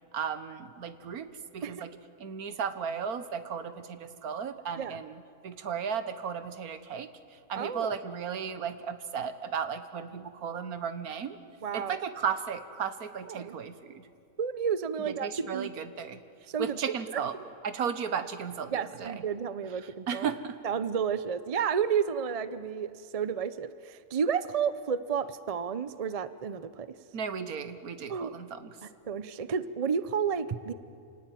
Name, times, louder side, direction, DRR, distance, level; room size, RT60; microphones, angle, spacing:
voice 1, 0.1-1.3 1.5-1.9 2.2-7.1 7.5-11.4 11.7-14.1 15.1-16.2 16.6-17.3 17.6-19.2 20.1-20.6 27.1-28.7, right 7 dB, 70° right, 11 dB, 1.6 m, -35 dB
voice 2, 7.5-7.9 11.6-12.0 13.3-13.5 14.4-15.7 16.5-17.2 18.7-20.3 20.6-26.9 28.1-28.4 28.8-30.7, right 7 dB, 40° right, 14 dB, 0.5 m, -31 dB
28.0 x 18.5 x 9.1 m, 2.4 s
omnidirectional pair, 1.7 m